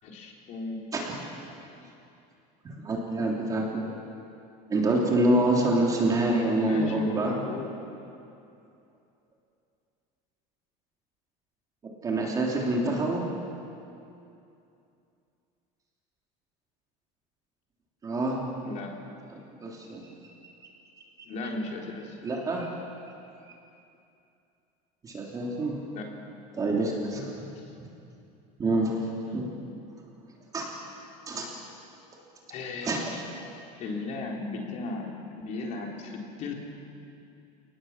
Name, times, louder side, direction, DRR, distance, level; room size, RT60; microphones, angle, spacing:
voice 1, 0.0-0.9 6.5-7.8 12.8-13.1 18.6-19.0 21.2-22.2 25.9-26.1 27.6-27.7 29.3-29.5 32.5-33.3 33.8-36.5, left 3 dB, 45° left, 0 dB, 4.1 m, -36 dB
voice 2, 2.8-3.8 4.7-7.4 12.0-13.2 18.0-18.4 19.6-20.0 22.2-22.7 25.0-25.7 26.5-27.3 28.6-28.9 29.3-29.4 30.5-30.7 31.3-31.5 32.8-33.0, right 1 dB, 20° right, -2 dB, 3.2 m, -26 dB
29.5 x 19.5 x 7.4 m, 2.6 s
cardioid pair, 165°, 17 cm